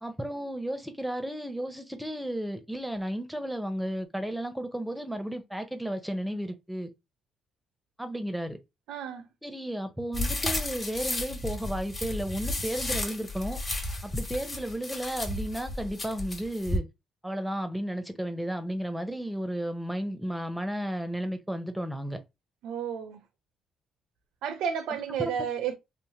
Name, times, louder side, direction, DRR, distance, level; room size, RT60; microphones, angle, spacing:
voice 1, 0.0-6.9 8.0-8.6 9.4-13.6 14.0-16.9 17.2-22.2 25.2-25.4, right 1 dB, 5° right, 0.6 m, -33 dB
voice 2, 8.9-9.3 22.6-23.2 24.4-25.8, right 8 dB, 85° right, 0.6 m, -32 dB
sound 1, 10.1-16.8, left 2 dB, 30° left, 1.1 m, -33 dB
3.2 x 2.1 x 2.7 m
cardioid pair, 90°, 0 cm